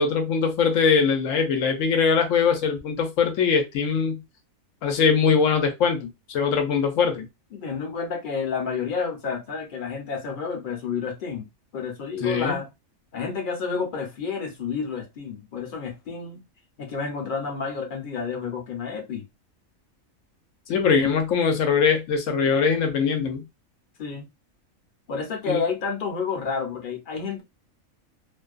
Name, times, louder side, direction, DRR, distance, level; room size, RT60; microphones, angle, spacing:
voice 1, 0.0-4.2 4.8-7.3 12.2-12.6 20.7-23.4 25.5-25.6, left 6 dB, 70° left, 1.0 m, -22 dB
voice 2, 7.5-11.5 11.7-12.7 13.1-16.4 16.8-19.2 24.0-24.3 25.1-27.4, left 5 dB, 45° left, 0.7 m, -30 dB
2.5 x 2.2 x 2.3 m
omnidirectional pair, 1.4 m